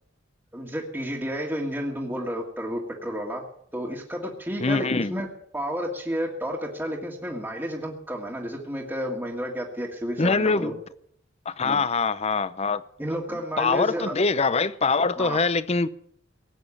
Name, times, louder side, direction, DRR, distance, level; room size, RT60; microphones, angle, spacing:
voice 1, 0.5-3.4 3.7-5.3 5.5-10.7 11.6-11.8 13.0-14.2 15.2-15.4, equal, 10° right, 1.8 m, -31 dB
voice 2, 4.6-5.1 10.2-10.8 11.5-12.8 13.6-15.9, left 4 dB, 35° left, 0.6 m, -23 dB
18.0 x 8.5 x 8.5 m
head